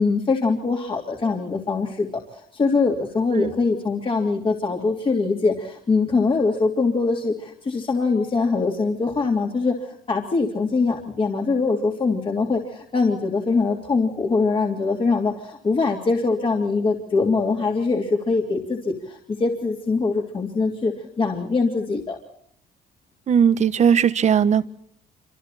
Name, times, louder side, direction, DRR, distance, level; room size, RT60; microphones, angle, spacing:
voice 1, 0.0-22.2, left 4 dB, 30° left, 1 dB, 3.2 m, -23 dB
voice 2, 23.3-24.7, right 7 dB, 45° right, 14 dB, 1.3 m, -18 dB
27.0 x 26.5 x 4.3 m, 0.65 s
cardioid pair, 110°, 17 cm